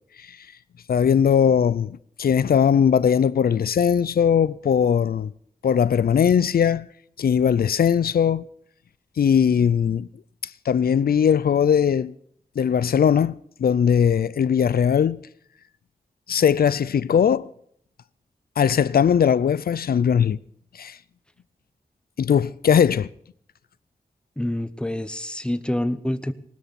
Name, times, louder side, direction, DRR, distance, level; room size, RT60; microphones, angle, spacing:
voice 1, 0.9-1.9 2.2-5.3 5.6-6.9 7.2-8.4 9.2-10.1 10.7-12.1 12.6-15.2 16.3-17.5 18.6-20.4 20.7-21.0 22.2-23.1, left 8 dB, 85° left, 0.5 m, -19 dB
voice 2, 24.4-26.3, left 1 dB, 5° left, 1.0 m, -27 dB
20.0 x 13.0 x 4.2 m
wide cardioid pair, 90°, 15 cm